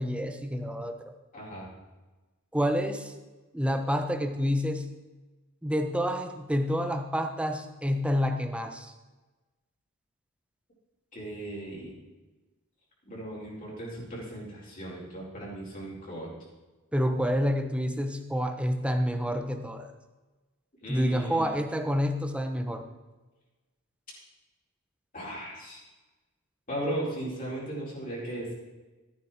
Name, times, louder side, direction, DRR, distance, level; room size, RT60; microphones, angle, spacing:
voice 1, 0.0-1.1 2.5-3.1 3.5-4.8 5.6-8.9 16.9-19.9 20.9-22.8, equal, 5° right, 6 dB, 1.0 m, -28 dB
voice 2, 1.3-1.7 11.1-11.9 13.0-16.3 20.8-21.5 25.1-25.8 26.7-28.5, right 1 dB, 40° left, -6 dB, 4.6 m, -36 dB
14.0 x 9.7 x 4.4 m, 1.2 s
head